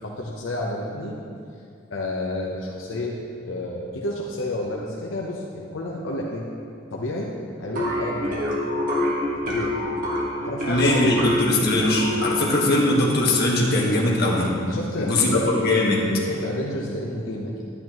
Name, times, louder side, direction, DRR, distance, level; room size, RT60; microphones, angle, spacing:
voice 1, 0.0-1.2 1.9-3.2 3.5-6.4 6.9-7.3 7.6-8.4 9.4-9.8 10.4-11.3 14.6-15.4 16.2-17.6, left 1 dB, 80° left, -3 dB, 0.8 m, -30 dB
sound 1, 7.8-12.5, left 1 dB, 45° right, 1.6 m, -26 dB
voice 2, 10.7-14.5 15.0-16.1, left 1 dB, 55° left, -3 dB, 1.6 m, -21 dB
10.5 x 10.0 x 3.1 m, 2.4 s
head